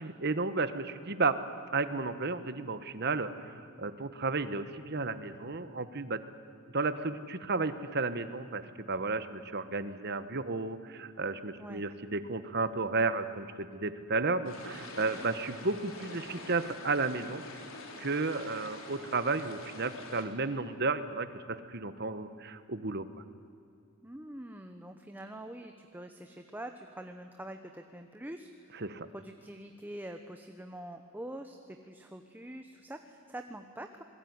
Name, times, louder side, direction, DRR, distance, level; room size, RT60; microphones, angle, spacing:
voice 1, 0.0-1.4 1.7-6.2 6.7-17.4 18.0-23.1 28.8-29.1, right 3 dB, 50° right, 11 dB, 1.3 m, -33 dB
sound 1, 14.4-20.2, left 2 dB, 70° left, 3.6 m, -46 dB
voice 2, 24.0-28.8 29.1-34.0, right 1 dB, 10° right, 6 dB, 1.1 m, -45 dB
27.0 x 21.0 x 9.7 m, 2.5 s
head